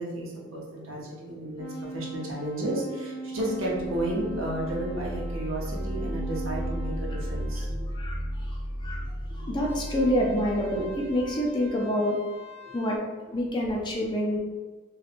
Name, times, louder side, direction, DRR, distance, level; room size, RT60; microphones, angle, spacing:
voice 1, 0.0-7.8 9.4-9.5 12.6-12.8, right 1 dB, 80° right, -3 dB, 0.8 m, -32 dB
sound 1, 1.6-7.7 9.6-13.0, right 2 dB, 75° left, 0.8 m, -41 dB
sound 2, 3.6-11.3, equal, 35° right, 0.6 m, -34 dB
voice 2, 7.9-9.1 9.3-12.2 12.7-13.0 13.3-14.4, equal, 20° left, -2 dB, 0.4 m, -27 dB
3.1 x 3.1 x 2.4 m, 1.3 s
head